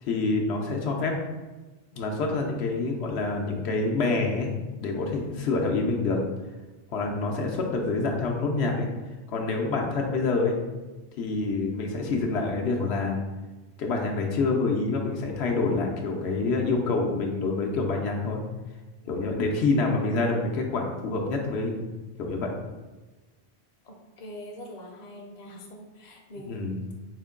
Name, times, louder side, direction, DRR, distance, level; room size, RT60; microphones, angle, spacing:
voice 1, 0.0-1.2 1.9-4.5 4.8-6.2 6.9-8.9 9.3-10.6 11.2-13.2 13.8-18.4 19.1-21.8 22.2-22.5 26.5-26.8, left 3 dB, 85° left, 1 dB, 0.9 m, -27 dB
voice 2, 5.3-5.6 23.8-26.6, left 1 dB, 45° left, 0 dB, 0.7 m, -44 dB
4.3 x 2.2 x 3.5 m, 1.2 s
omnidirectional pair, 1.1 m